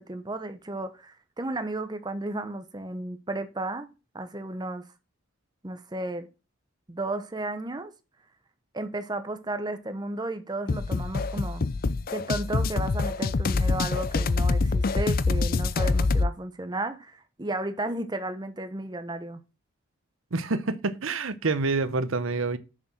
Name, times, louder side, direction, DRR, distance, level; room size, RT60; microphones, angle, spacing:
voice 1, 0.0-3.9 4.1-4.9 5.6-6.3 6.9-7.9 8.7-11.6 12.1-19.4, right 2 dB, 20° right, 0.8 m, -33 dB
sound 1, 10.7-16.3, left 3 dB, 45° left, 0.5 m, -25 dB
voice 2, 20.3-22.6, right 3 dB, 80° right, 0.9 m, -27 dB
6.8 x 6.7 x 6.2 m
head